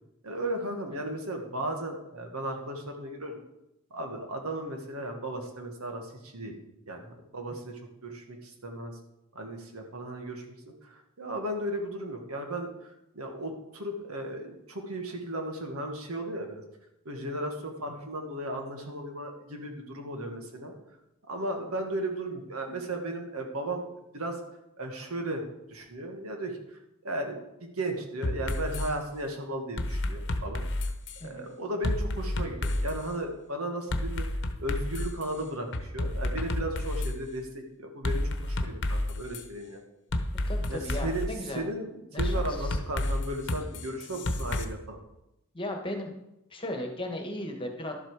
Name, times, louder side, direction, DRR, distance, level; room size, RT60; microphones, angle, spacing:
voice 1, 0.2-3.4 3.9-6.5 6.9-9.0 9.3-10.5 10.8-16.6 17.1-20.7 21.3-23.9 24.1-24.4 24.8-30.9 31.2-34.3 34.6-39.8 40.7-41.3 41.5-45.0, right 1 dB, 80° right, 3 dB, 1.9 m, -35 dB
sound 1, 28.2-28.9 29.8-31.2 31.8-33.0 33.9-35.2 35.7-37.1 38.0-39.4 40.1-41.3 42.2-44.6, left 1 dB, 55° left, 1.0 m, -30 dB
voice 2, 40.5-41.7 42.1-42.8 45.5-46.1 46.5-47.9, left 1 dB, 25° left, 3 dB, 1.5 m, -36 dB
12.0 x 7.7 x 4.9 m, 0.88 s
head